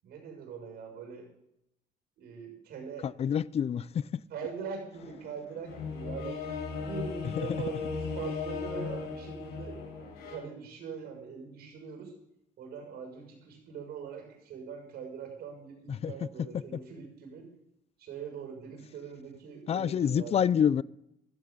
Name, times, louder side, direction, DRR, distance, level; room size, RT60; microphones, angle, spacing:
voice 1, 0.0-1.3 2.2-3.1 4.3-6.4 6.8-12.1 12.6-17.5 18.0-20.3, right 6 dB, 70° right, 6.6 m, -42 dB
voice 2, 3.0-4.1 7.4-7.6 15.9-16.1 19.7-20.8, left 8 dB, 35° left, 0.5 m, -27 dB
sound 1, 4.9-10.4, left 5 dB, 75° left, 6.0 m, -37 dB
15.0 x 14.0 x 3.9 m
cardioid pair, 110°, 17 cm